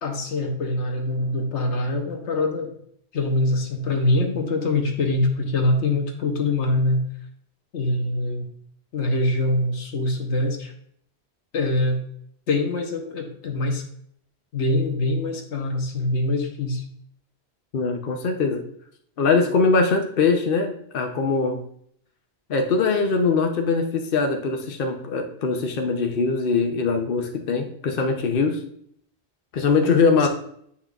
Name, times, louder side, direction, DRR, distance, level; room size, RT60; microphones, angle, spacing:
voice 1, 0.0-2.7 3.1-7.0 7.7-8.5 8.9-10.7 11.5-12.0 12.5-13.8 14.5-16.8 30.2-30.3, left 2 dB, 90° left, 3 dB, 1.3 m, -24 dB
voice 2, 17.7-18.6 19.2-21.6 22.5-28.6 29.5-30.3, left 4 dB, 60° left, 3 dB, 1.0 m, -22 dB
8.4 x 5.7 x 2.4 m, 0.66 s
omnidirectional pair, 1.1 m